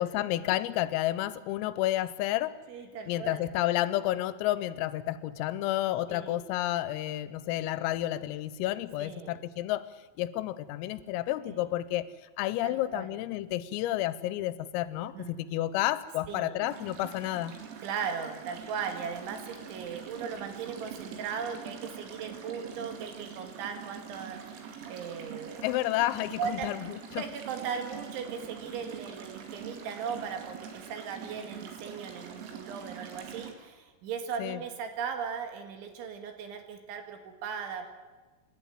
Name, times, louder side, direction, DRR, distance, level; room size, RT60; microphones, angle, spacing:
voice 1, 0.0-2.6 3.1-9.9 10.2-12.1 12.4-17.5 25.6-27.2 34.4-34.6, left 15 dB, 90° left, 16 dB, 3.5 m, -30 dB
voice 2, 2.7-3.4 6.1-6.4 9.0-9.4 11.4-11.6 12.6-13.2 15.1-15.3 16.3-16.6 17.8-25.7 26.4-26.7 27.2-37.9, right 6 dB, 70° right, 6 dB, 4.1 m, -38 dB
sound 1, 16.6-33.5, right 7 dB, 90° right, 4.9 m, -44 dB
27.5 x 11.5 x 9.1 m, 1.3 s
omnidirectional pair, 5.9 m